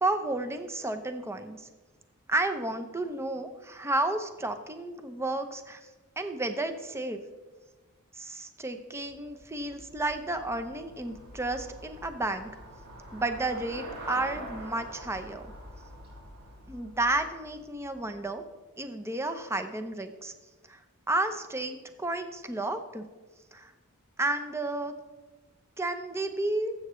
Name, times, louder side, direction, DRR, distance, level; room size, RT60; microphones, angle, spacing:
voice 1, 0.0-1.6 2.3-5.8 6.2-7.2 8.2-12.5 13.1-15.5 16.7-18.4 18.8-20.3 20.7-20.8 21.1-23.0 23.5-23.7 24.2-24.9 25.8-26.7, right 2 dB, 10° right, 8 dB, 0.7 m, -32 dB
Traffic noise roadway noise / Bicycle, 9.0-18.2, right 1 dB, 80° right, 3.6 m, -46 dB
20.0 x 8.0 x 3.1 m, 1.2 s
head